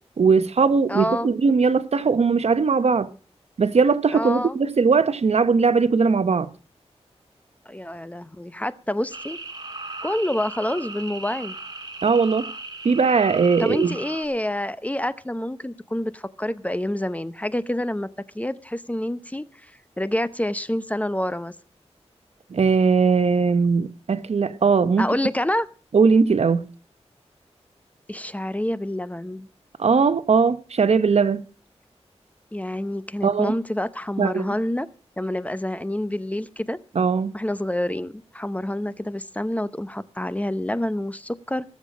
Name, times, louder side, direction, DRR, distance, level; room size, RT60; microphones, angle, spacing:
voice 1, 0.2-3.1 3.6-6.5 12.0-12.5 12.8-13.9 22.5-25.1 25.9-26.6 29.8-31.4 33.2-33.6 34.2-34.5 36.9-37.4, right 5 dB, 70° right, 0.8 m, -19 dB
voice 2, 0.9-1.3 4.1-4.6 7.7-9.4 10.0-11.5 13.6-18.1 18.3-19.4 20.0-21.5 25.0-25.7 28.1-29.5 32.5-34.9 35.2-36.8 37.3-41.7, left 1 dB, 10° left, 0.7 m, -27 dB
sound 1, 9.1-14.3, right 3 dB, 40° right, 2.5 m, -37 dB
17.5 x 7.4 x 6.2 m
wide cardioid pair, 70°, 11 cm